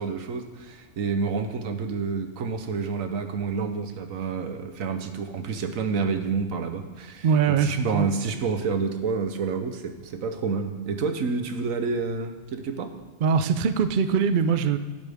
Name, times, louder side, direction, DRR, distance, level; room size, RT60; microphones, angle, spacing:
voice 1, 0.0-12.9, right 5 dB, 90° right, 7 dB, 1.3 m, -29 dB
voice 2, 7.2-8.1 13.2-14.8, right 6 dB, 55° right, 10 dB, 0.6 m, -22 dB
12.0 x 10.5 x 3.6 m, 1.2 s
omnidirectional pair, 1.4 m